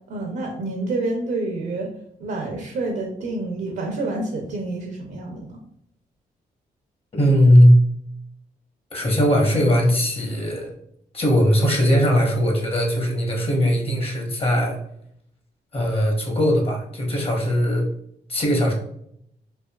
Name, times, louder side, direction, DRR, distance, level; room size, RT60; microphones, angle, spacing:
voice 1, 0.1-1.9 2.2-5.6, right 2 dB, 70° right, 1 dB, 0.7 m, -28 dB
voice 2, 7.1-7.8 8.9-10.7 11.1-14.8 15.7-17.9 18.3-18.7, equal, 35° left, 1 dB, 1.0 m, -19 dB
3.4 x 2.4 x 2.3 m, 0.71 s
supercardioid pair, 65°, 17 cm